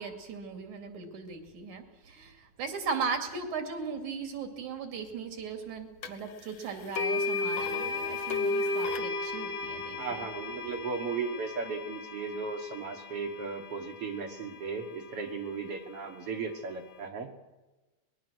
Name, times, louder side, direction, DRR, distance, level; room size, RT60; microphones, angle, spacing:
voice 1, 0.0-10.3, right 5 dB, 70° right, 5 dB, 3.8 m, -38 dB
sound 1, 6.0-6.1 7.0-15.0, left 3 dB, 50° left, 1.6 m, -34 dB
voice 2, 10.0-17.3, right 5 dB, 55° right, 5 dB, 2.3 m, -36 dB
24.5 x 20.5 x 6.3 m, 1.1 s
omnidirectional pair, 3.5 m